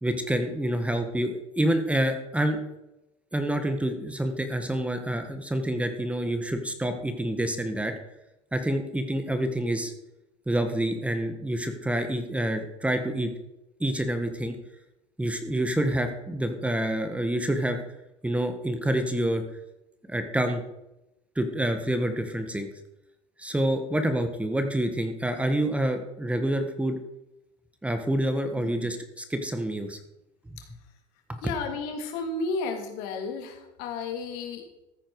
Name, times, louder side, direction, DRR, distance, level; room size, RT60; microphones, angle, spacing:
voice 1, 0.0-2.6 3.3-7.9 8.5-9.9 10.5-13.3 13.8-14.6 15.2-17.8 18.2-19.4 20.1-20.6 21.3-22.7 23.4-27.0 27.8-30.0 30.5-30.6 31.3-31.4, right 1 dB, 10° right, 7 dB, 1.5 m, -27 dB
voice 2, 28.6-28.9 31.4-34.6, left 3 dB, 70° left, 4 dB, 2.7 m, -33 dB
14.5 x 8.8 x 4.8 m, 0.91 s
supercardioid pair, 100°, 16 cm